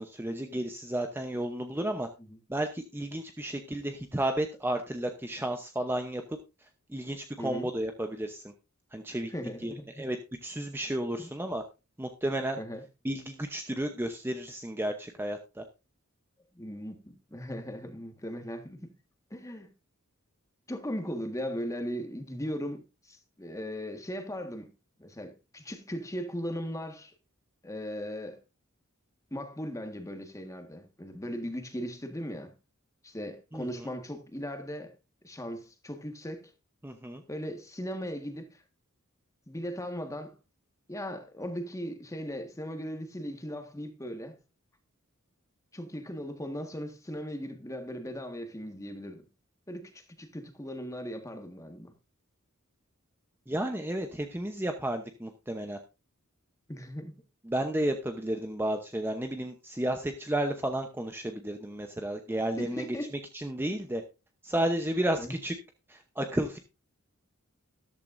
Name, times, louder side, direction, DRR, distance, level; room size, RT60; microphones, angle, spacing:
voice 1, 0.0-2.1 2.5-6.4 6.9-8.4 8.9-9.3 9.6-10.2 10.4-11.6 12.0-12.6 13.0-15.6 33.5-33.7 36.8-37.2 53.5-55.8 57.5-62.9 63.3-64.0 64.4-65.5 65.9-66.6, right 1 dB, 10° right, 0.8 m, -32 dB
voice 2, 7.4-7.7 9.3-10.0 11.2-11.3 12.6-12.8 16.5-18.9 19.3-19.7 20.7-24.7 25.0-27.1 27.6-28.4 29.3-32.5 33.0-34.9 35.2-36.5 37.3-38.6 39.5-40.3 40.9-44.4 45.7-49.3 49.7-51.9 56.7-57.1 62.6-63.1 65.2-65.3, equal, 15° left, 1.6 m, -38 dB
13.5 x 12.0 x 2.6 m
head